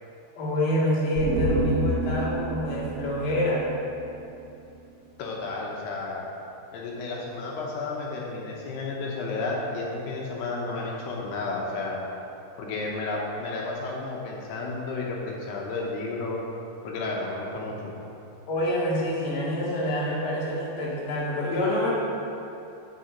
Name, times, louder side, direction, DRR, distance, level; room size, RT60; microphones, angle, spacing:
voice 1, 0.3-3.6 18.5-21.9, left 1 dB, 40° left, -8 dB, 2.1 m, -26 dB
sound 1, 1.2-4.6 4.9-5.0, right 2 dB, 80° right, 2.2 m, -29 dB
voice 2, 5.2-6.2 6.7-12.0 12.6-16.4 16.8-17.9, left 3 dB, 80° left, -2 dB, 3.0 m, -32 dB
6.8 x 5.9 x 6.8 m, 2.8 s
omnidirectional pair, 4.7 m